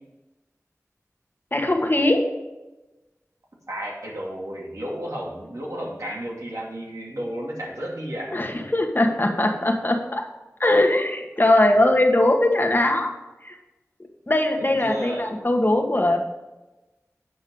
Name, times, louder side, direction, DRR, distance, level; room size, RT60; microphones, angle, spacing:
voice 1, 1.5-2.2 8.3-10.2 10.6-13.1 13.4-13.6 14.3-16.2, left 1 dB, 40° left, 2 dB, 1.4 m, -20 dB
voice 2, 3.7-8.4 14.6-15.2, equal, 75° right, -3 dB, 2.5 m, -33 dB
9.5 x 6.2 x 5.4 m, 1.1 s
wide cardioid pair, 55°, 6 cm